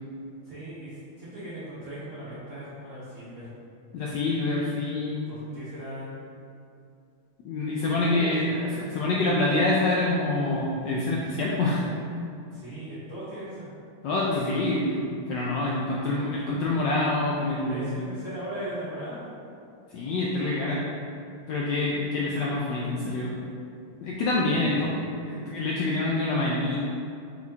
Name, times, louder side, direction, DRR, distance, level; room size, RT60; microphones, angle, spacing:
voice 1, 0.4-3.5 5.3-6.1 8.0-9.2 12.5-13.7 15.8-16.0 17.6-19.3 24.5-25.1, right 1 dB, 50° right, -11 dB, 0.9 m, -39 dB
voice 2, 3.9-5.4 7.4-8.4 8.9-11.8 14.0-17.9 19.9-20.8 21.5-23.3 24.0-25.0 25.2-26.8, left 2 dB, 75° left, -5 dB, 1.0 m, -26 dB
4.5 x 4.0 x 2.7 m, 2.5 s
omnidirectional pair, 2.4 m